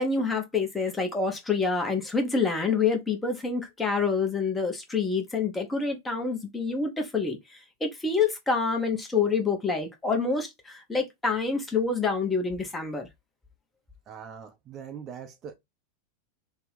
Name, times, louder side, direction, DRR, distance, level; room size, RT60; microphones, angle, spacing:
voice 1, 0.0-7.4 7.8-13.1, left 4 dB, 10° left, 0.7 m, -27 dB
voice 2, 14.1-15.5, right 7 dB, 30° right, 0.4 m, -42 dB
2.7 x 2.1 x 3.2 m
figure-of-eight pair, 90°, 0 cm